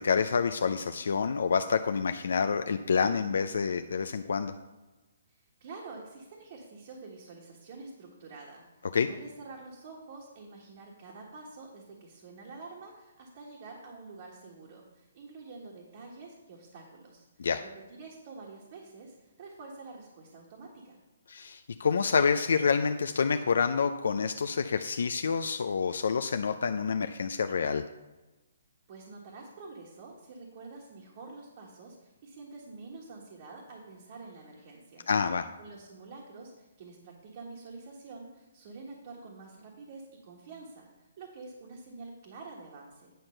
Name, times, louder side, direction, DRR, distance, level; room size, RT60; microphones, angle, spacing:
voice 1, 0.0-4.5 8.9-9.1 17.4-17.6 21.3-27.8 35.1-35.5, left 5 dB, 70° left, 8 dB, 0.4 m, -28 dB
voice 2, 5.3-21.0 28.9-35.0 35.6-43.1, right 3 dB, 40° right, -2 dB, 1.4 m, -47 dB
9.2 x 4.4 x 6.5 m, 1.1 s
hypercardioid pair, 165°, 0 cm